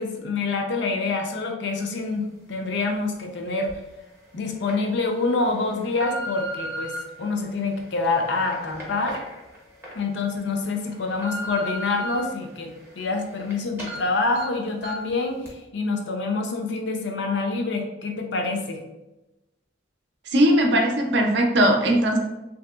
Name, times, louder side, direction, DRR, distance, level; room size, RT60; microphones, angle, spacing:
voice 1, 0.0-3.8 4.3-9.2 9.9-18.8, left 3 dB, 60° left, 3 dB, 0.4 m, -26 dB
sound 1, 3.7-3.8 4.4-4.7 5.4-7.0 7.6-9.9 10.4-10.5 10.9-12.2 12.6-13.5 13.8-14.0 14.4-14.5 14.8-15.1 15.5-15.6, equal, 10° right, 0.6 m, -36 dB
voice 2, 20.3-22.2, right 1 dB, 60° right, 2 dB, 0.5 m, -19 dB
2.9 x 2.7 x 2.2 m, 0.98 s
head